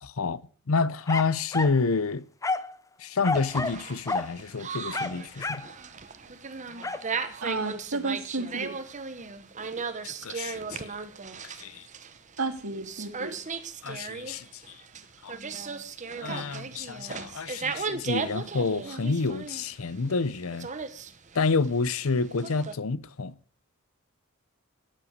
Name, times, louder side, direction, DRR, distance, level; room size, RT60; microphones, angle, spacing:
voice 1, 0.0-0.4 0.7-2.2 3.0-5.6 10.0-10.8 11.4-11.9 13.8-14.8 15.2-15.4 16.2-20.7 21.3-23.3, left 4 dB, 75° left, 0.7 m, -29 dB
sound 1, 1.1-1.8 2.4-2.8 3.2-3.8 4.1-4.3 4.9-5.7 6.8-7.1, left 3 dB, 15° left, 0.6 m, -30 dB
sound 2, 3.4-22.7, right 5 dB, 35° right, 1.0 m, -37 dB
voice 2, 7.4-8.7 12.4-13.4 16.3-16.5, right 3 dB, 75° right, 2.1 m, -32 dB
12.5 x 8.9 x 6.5 m
head